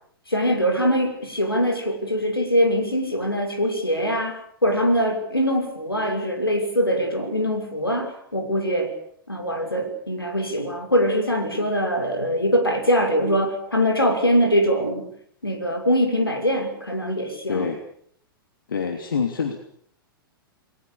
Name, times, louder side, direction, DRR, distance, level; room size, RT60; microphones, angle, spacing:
voice 1, 0.3-8.9 9.3-15.1 15.4-17.7, equal, 85° left, 4 dB, 6.3 m, -22 dB
voice 2, 17.5-17.8 18.7-19.6, left 6 dB, 65° left, 5 dB, 2.9 m, -26 dB
29.5 x 21.0 x 6.9 m, 0.63 s
figure-of-eight pair, 100°, 12 cm